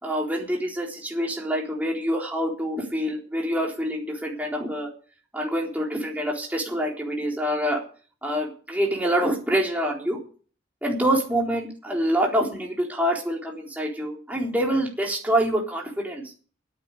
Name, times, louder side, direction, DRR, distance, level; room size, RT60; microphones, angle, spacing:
voice 1, 0.0-4.9 5.3-7.8 8.2-10.2 10.8-16.2, equal, 10° right, -2 dB, 4.0 m, -26 dB
9.5 x 9.4 x 10.0 m, 0.41 s
head